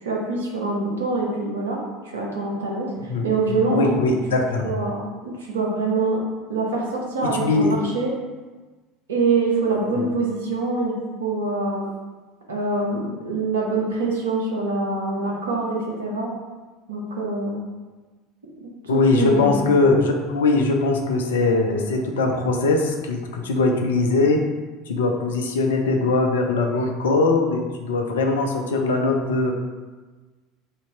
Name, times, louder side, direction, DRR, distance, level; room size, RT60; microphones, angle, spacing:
voice 1, 0.0-1.8 2.0-3.9 4.6-6.2 6.5-8.1 9.1-11.9 12.5-16.3 16.9-17.6 18.6-19.7, right 3 dB, 80° right, -3 dB, 1.0 m, -25 dB
voice 2, 3.7-4.7 7.4-7.7 9.9-10.1 18.9-24.4 24.9-29.5, left 3 dB, 75° left, 2 dB, 0.6 m, -21 dB
3.6 x 2.8 x 4.4 m, 1.3 s
hypercardioid pair, 70°, 0 cm